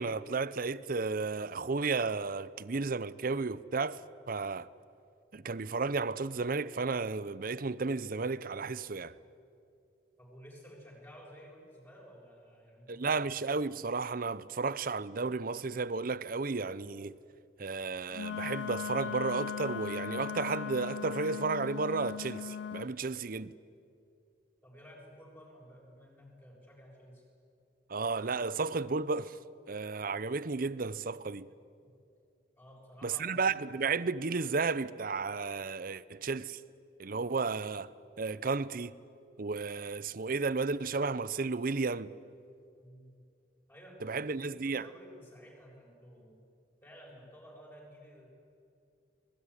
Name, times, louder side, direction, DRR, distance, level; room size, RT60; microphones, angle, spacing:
voice 1, 0.0-4.0 4.3-4.7 5.3-9.1 12.9-17.2 17.6-23.5 27.9-29.4 29.7-31.5 33.0-36.6 37.0-37.9 38.2-39.0 39.4-42.1 44.0-44.8, right 4 dB, 50° right, 0.7 m, -33 dB
voice 2, 10.2-13.1 24.6-27.3 31.8-31.9 32.6-33.5 42.8-43.1 43.7-44.4 44.6-46.4 46.8-48.3, equal, 15° left, 7.1 m, -53 dB
Wind instrument woodwind instrument, 18.1-22.9, left 8 dB, 75° left, 0.6 m, -38 dB
26.5 x 21.0 x 10.0 m
head